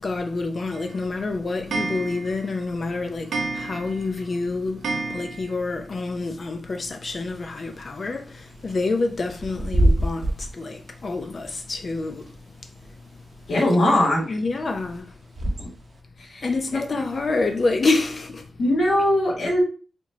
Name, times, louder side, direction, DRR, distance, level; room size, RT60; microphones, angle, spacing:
voice 1, 0.0-13.1 13.4-13.5 13.9-14.0 14.3-15.2 16.4-18.6, left 3 dB, 40° left, 0.4 m, -28 dB
Clock, 0.7-5.8 6.1-6.2 6.5-6.6 6.8-6.9 8.1-8.2 8.7-8.8 9.3-9.4 10.0-10.1 10.6-10.7 11.3-11.4, right 3 dB, 90° right, 0.6 m, -32 dB
Bird / Wind, 7.3-16.0, equal, 40° right, 0.7 m, -28 dB
voice 2, 13.5-14.2 15.4-15.7 16.2-16.4 18.6-19.6, left 1 dB, 60° left, 1.5 m, -21 dB
4.2 x 2.9 x 2.7 m
wide cardioid pair, 160°, 0 cm